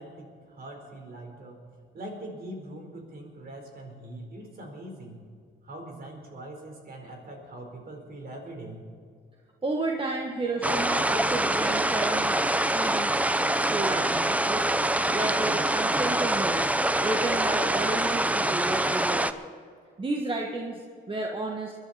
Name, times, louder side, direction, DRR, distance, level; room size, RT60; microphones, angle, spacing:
voice 1, 0.0-1.6 1.9-5.2 5.6-8.8, right 1 dB, 50° right, 2 dB, 4.3 m, -42 dB
voice 2, 9.6-13.2 13.7-14.8 15.1-19.3 20.0-21.7, right 2 dB, 25° right, 1 dB, 1.5 m, -32 dB
sound 1, 10.6-19.3, right 1 dB, 5° right, 0.6 m, -25 dB
21.5 x 11.5 x 4.3 m, 2.2 s
cardioid pair, 90°, 20 cm